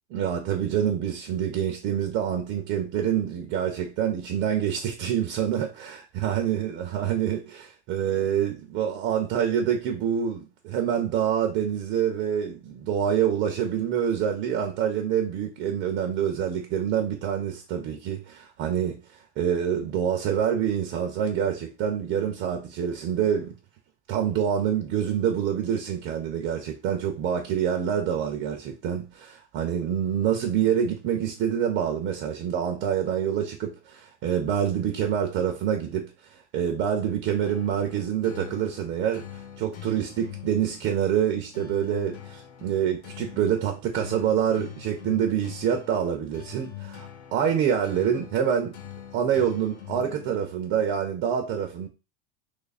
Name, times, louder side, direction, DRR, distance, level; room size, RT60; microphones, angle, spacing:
voice 1, 0.1-23.6 24.1-48.8 49.1-51.9, right 9 dB, 30° right, 0.4 m, -26 dB
sound 1, 37.4-50.9, left 11 dB, 65° left, 1.0 m, -44 dB
3.1 x 2.4 x 4.0 m
supercardioid pair, 155°, 34 cm